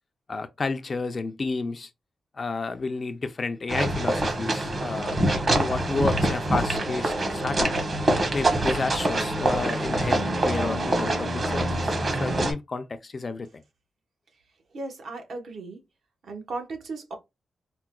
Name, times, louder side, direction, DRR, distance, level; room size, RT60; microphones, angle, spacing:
voice 1, 0.3-1.9 2.4-5.2 5.5-7.7 8.3-13.6, left 3 dB, 35° left, 0.4 m, -31 dB
sound 1, 3.7-12.5, right 1 dB, 40° right, 1.0 m, -25 dB
voice 2, 14.7-15.8 16.2-17.2, right 3 dB, 70° right, 1.1 m, -36 dB
4.6 x 2.2 x 2.2 m
wide cardioid pair, 140°, 0 cm